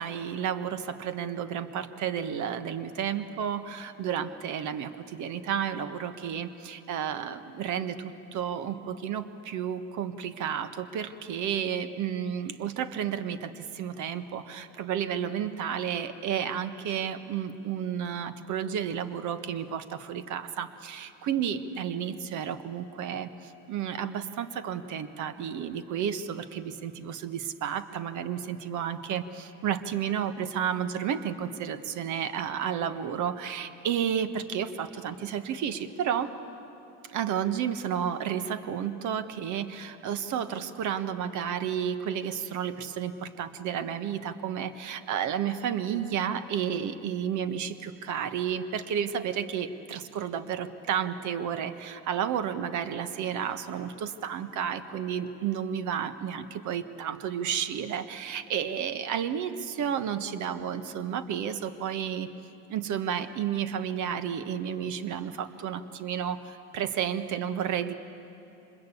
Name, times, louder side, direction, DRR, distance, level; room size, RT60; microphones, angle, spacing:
voice 1, 0.0-36.3 37.0-62.3 62.7-67.9, right 8 dB, 60° right, 12 dB, 1.4 m, -32 dB
25.5 x 21.5 x 8.4 m, 2.9 s
supercardioid pair, 85°, 34 cm